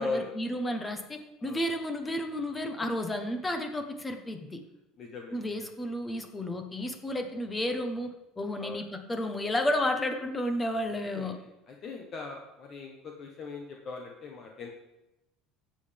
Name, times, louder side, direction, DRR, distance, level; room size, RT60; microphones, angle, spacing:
voice 1, 0.0-4.6 5.3-8.1 8.4-11.4, left 1 dB, 10° left, 6 dB, 1.1 m, -32 dB
voice 2, 5.0-5.4 8.6-8.8 11.0-14.7, left 3 dB, 35° left, 1 dB, 1.2 m, -39 dB
16.0 x 7.7 x 3.5 m, 0.95 s
cardioid pair, 150°, 0 cm